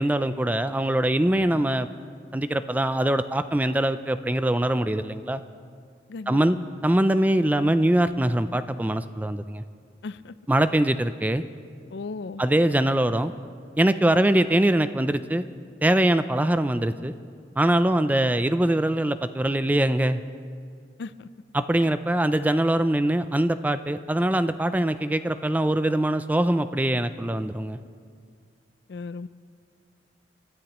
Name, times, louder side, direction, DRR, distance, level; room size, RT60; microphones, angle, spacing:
voice 1, 0.0-1.9 2.3-5.4 6.3-6.6 6.8-9.6 10.5-11.4 12.4-13.3 13.8-15.4 15.8-17.1 17.6-20.2 21.5-27.8, right 1 dB, 10° right, 11 dB, 0.3 m, -23 dB
voice 2, 6.1-6.6 10.0-10.3 11.9-12.4 21.0-21.3 21.8-21.9 28.9-29.3, left 4 dB, 65° left, 15 dB, 0.4 m, -36 dB
29.5 x 13.0 x 3.0 m, 2.2 s
head